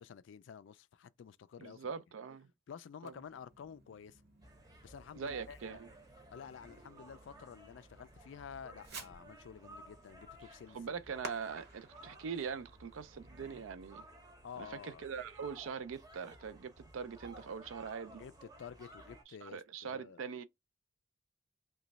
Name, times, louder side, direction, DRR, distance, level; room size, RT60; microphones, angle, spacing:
voice 1, 0.0-2.0 2.7-4.2 4.8-5.8 6.3-11.0 14.4-15.1 18.2-20.2, left 7 dB, 65° left, 0.3 m, -51 dB
voice 2, 1.6-2.5 3.0-3.1 5.2-5.9 10.7-14.1 14.6-18.2 19.3-20.4, right 6 dB, 75° right, 0.4 m, -42 dB
Fireworks, 3.0-13.7, right 3 dB, 50° right, 0.8 m, -55 dB
sound 1, 4.4-19.2, right 1 dB, 20° right, 0.7 m, -56 dB
3.0 x 2.2 x 4.0 m
head